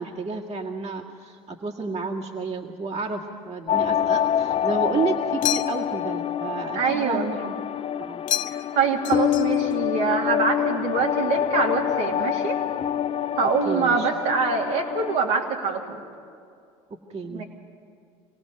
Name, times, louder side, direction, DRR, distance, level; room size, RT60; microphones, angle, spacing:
voice 1, 0.0-7.6 8.0-8.2 13.7-14.1 16.9-17.4, right 4 dB, 40° right, 0 dB, 2.0 m, -31 dB
sound 1, 3.7-15.2, left 10 dB, 35° left, 0.4 m, -26 dB
sound 2, 5.4-6.0 8.3-8.8 9.0-9.8, left 12 dB, 85° left, 0.7 m, -29 dB
voice 2, 6.7-7.2 8.7-12.6 13.4-15.8 17.3-17.4, right 5 dB, 80° right, -2 dB, 2.9 m, -24 dB
25.5 x 18.0 x 6.6 m, 2.4 s
hypercardioid pair, 75°, 16 cm